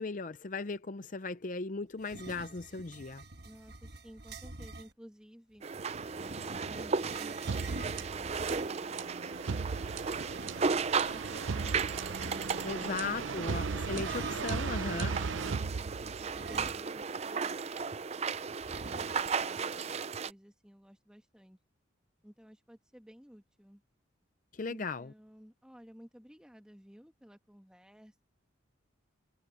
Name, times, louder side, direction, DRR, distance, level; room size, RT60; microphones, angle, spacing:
voice 1, 0.0-3.2 12.6-15.2 24.5-25.1, left 3 dB, 40° left, 0.6 m, -37 dB
sound 1, 2.0-4.9 5.8-8.9 10.1-12.7 13.8-14.7 16.3-17.2 17.5-17.6 18.6-19.5, right 2 dB, 55° right, 1.5 m, -46 dB
voice 2, 3.4-5.6 6.1-9.9 15.3-18.4 18.8-21.6 22.2-23.8 24.6-28.2, equal, 5° right, 1.6 m, -55 dB
sound 2, 5.6-20.3, right 5 dB, 35° right, 0.4 m, -35 dB
sound 3, 7.5-16.4, right 5 dB, 80° right, 0.6 m, -37 dB
head